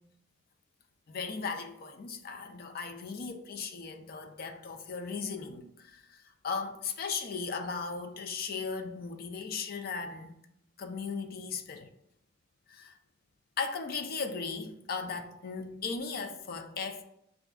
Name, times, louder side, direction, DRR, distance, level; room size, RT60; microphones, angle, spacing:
voice 1, 1.1-10.4 10.8-11.9 12.7-12.9 13.6-17.0, left 5 dB, 50° left, 0.4 m, -37 dB
6.6 x 2.6 x 2.3 m
head